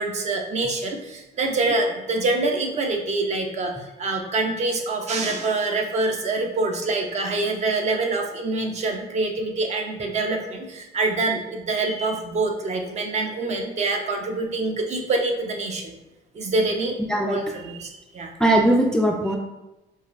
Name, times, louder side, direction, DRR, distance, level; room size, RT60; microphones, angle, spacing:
voice 1, 0.0-16.0 16.3-17.0 17.3-18.3, right 3 dB, 40° right, 3 dB, 0.6 m, -25 dB
voice 2, 17.1-17.4 18.4-19.4, right 1 dB, 5° left, 1 dB, 0.3 m, -19 dB
4.9 x 2.4 x 2.5 m, 0.98 s
cardioid pair, 110°, 17 cm